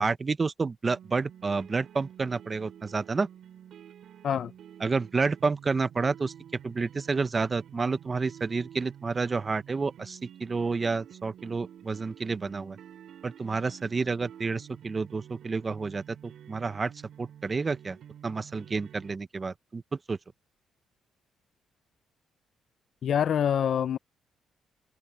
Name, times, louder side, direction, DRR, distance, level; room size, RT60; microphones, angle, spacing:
voice 1, 0.0-3.3 4.8-6.3 6.6-12.8 13.2-16.9 17.2-18.0 18.2-19.8 20.1-20.2, right 4 dB, 30° right, 0.8 m, -30 dB
sound 1, 0.9-19.1, right 10 dB, 70° right, 4.5 m, -49 dB
voice 2, 23.0-24.0, left 9 dB, 60° left, 0.6 m, -26 dB
cardioid pair, 90°, 0 cm